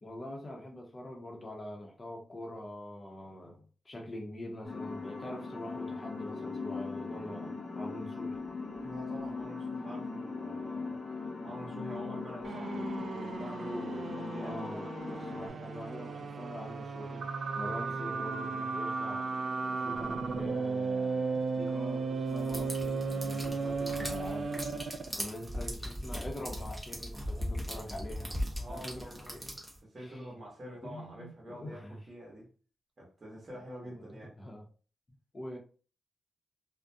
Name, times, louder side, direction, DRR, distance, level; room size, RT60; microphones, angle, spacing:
voice 1, 0.0-8.4 14.4-17.2 17.5-19.2 19.6-24.5 25.1-28.3 28.7-29.1 29.4-29.5 30.0-30.2 30.8-32.0 33.9-34.7 35.3-35.6, left 1 dB, 25° left, 0.7 m, -44 dB
sound 1, 4.6-15.5, left 4 dB, 60° left, 0.8 m, -39 dB
voice 2, 8.8-14.6 25.4-25.7 28.5-32.5 33.0-34.4, equal, 35° right, 0.9 m, -47 dB
sound 2, 12.4-25.2, right 4 dB, 55° right, 0.3 m, -35 dB
sound 3, 22.4-29.8, equal, 10° right, 0.6 m, -39 dB
2.4 x 2.1 x 2.6 m
wide cardioid pair, 130°, 0 cm